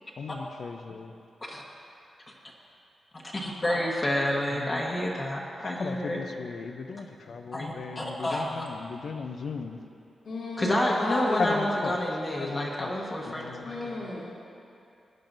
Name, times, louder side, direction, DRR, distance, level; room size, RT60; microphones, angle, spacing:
voice 1, 0.2-1.1 4.5-4.8 5.6-9.8 11.4-12.0 12.4-13.7, left 5 dB, 65° left, 5 dB, 0.6 m, -36 dB
voice 2, 3.1-6.2 7.5-8.6 10.6-13.9, left 1 dB, 25° left, -3 dB, 1.2 m, -29 dB
voice 3, 10.2-11.5 13.6-14.2, left 2 dB, 80° left, -9 dB, 2.6 m, -33 dB
19.5 x 10.0 x 2.7 m, 2.6 s
wide cardioid pair, 150°, 0 cm